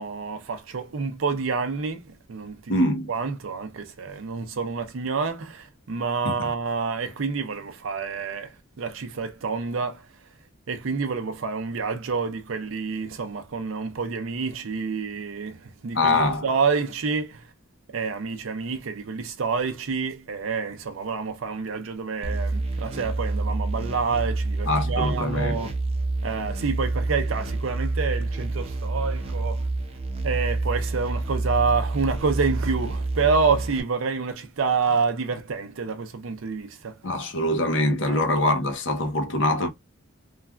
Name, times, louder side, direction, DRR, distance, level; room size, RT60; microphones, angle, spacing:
voice 1, 0.0-2.0 2.3-2.7 3.1-10.0 10.7-17.4 17.9-25.7 26.2-29.6 30.2-37.0 38.1-38.2, right 5 dB, 85° right, 0.5 m, -28 dB
voice 2, 2.7-3.1 6.2-6.3 15.9-16.5 24.6-25.7 37.0-39.7, left 1 dB, 65° left, 0.7 m, -23 dB
sound 1, 22.2-33.8, right 2 dB, 30° right, 0.5 m, -28 dB
3.2 x 2.3 x 2.2 m
head